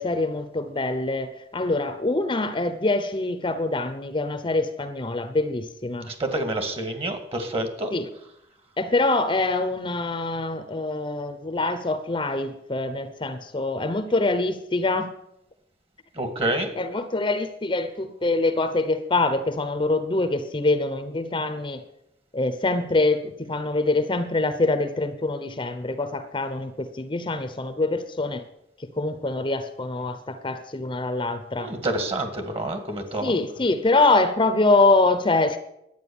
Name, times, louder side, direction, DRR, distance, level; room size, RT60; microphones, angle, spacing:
voice 1, 0.0-6.1 7.9-8.1 8.8-15.1 16.8-21.8 22.3-28.4 28.8-31.7 33.2-35.6, left 2 dB, 30° left, 11 dB, 0.8 m, -24 dB
voice 2, 6.1-7.9 16.2-16.7 31.6-33.3, right 1 dB, 35° right, 7 dB, 2.0 m, -28 dB
11.0 x 9.0 x 7.1 m, 0.82 s
head